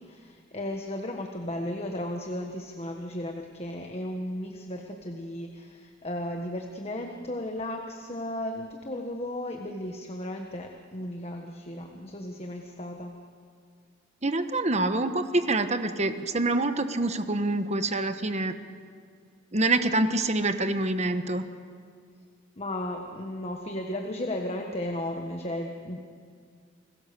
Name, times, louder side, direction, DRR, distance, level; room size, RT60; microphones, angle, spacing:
voice 1, 0.1-13.2 22.6-26.0, left 1 dB, 30° left, 3 dB, 1.5 m, -35 dB
voice 2, 14.2-18.5 19.5-21.4, right 2 dB, 35° right, 9 dB, 1.3 m, -26 dB
30.0 x 21.0 x 6.9 m, 2.1 s
head